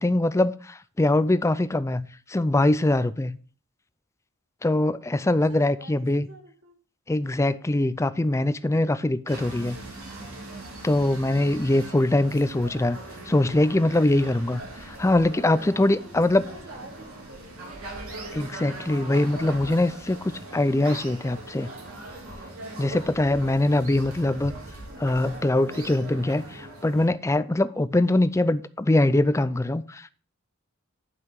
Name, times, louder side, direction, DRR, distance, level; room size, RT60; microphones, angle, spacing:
voice 1, 0.0-3.4 4.6-6.3 7.1-9.8 10.8-13.0 13.3-16.4 18.3-21.7 22.8-24.5 25.0-30.1, left 1 dB, 15° left, 0.4 m, -23 dB
voice 2, 5.5-6.8 15.9-17.8, right 1 dB, 60° right, 3.2 m, -48 dB
sound 1, 9.3-27.1, right 2 dB, 85° right, 3.7 m, -40 dB
10.5 x 5.7 x 4.7 m
head